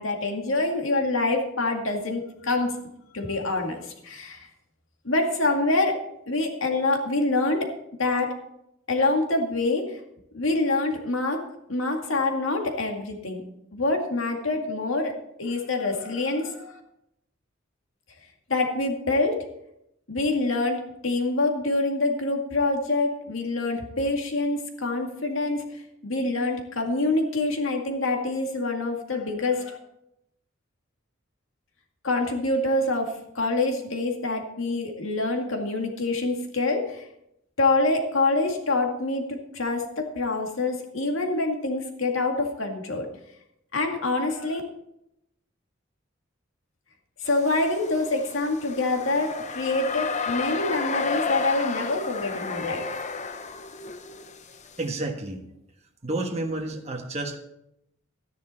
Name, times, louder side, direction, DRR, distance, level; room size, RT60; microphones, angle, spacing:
voice 1, 0.0-2.7 3.1-4.5 5.0-6.0 6.3-7.7 8.0-8.3 8.9-10.0 10.3-11.4 11.7-13.4 13.7-15.1 15.4-16.8 18.5-19.4 20.1-25.6 26.0-29.8 32.0-37.0 37.6-43.1 43.7-44.6 47.2-52.8, left 2 dB, 80° left, 3 dB, 2.1 m, -26 dB
sound 1, 47.3-54.8, left 4 dB, 35° left, 0.8 m, -32 dB
voice 2, 54.8-55.4 56.0-57.4, right 2 dB, 35° right, 2 dB, 1.4 m, -30 dB
13.0 x 10.5 x 4.4 m, 0.81 s
head